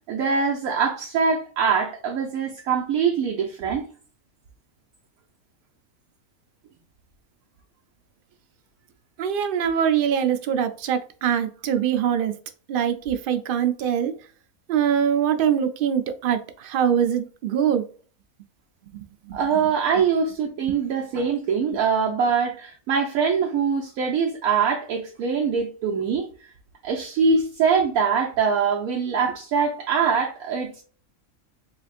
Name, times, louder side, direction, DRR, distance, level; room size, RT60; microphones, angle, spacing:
voice 1, 0.1-3.9 19.3-26.5 26.8-30.8, right 6 dB, 85° right, 1.1 m, -23 dB
voice 2, 9.2-12.3 12.7-14.1 14.7-17.8 18.9-19.4, right 9 dB, 65° right, 0.5 m, -23 dB
3.9 x 3.3 x 2.4 m
omnidirectional pair, 1.5 m